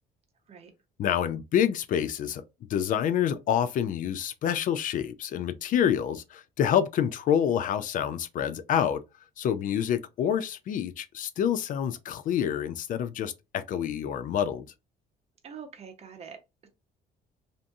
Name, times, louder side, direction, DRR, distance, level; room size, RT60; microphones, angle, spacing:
voice 1, 1.0-2.4 2.7-9.0 9.4-14.7, left 9 dB, 50° left, 0.4 m, -27 dB
voice 2, 15.4-16.7, right 6 dB, 40° right, 0.8 m, -45 dB
2.6 x 2.6 x 2.3 m
cardioid pair, 110°, 17 cm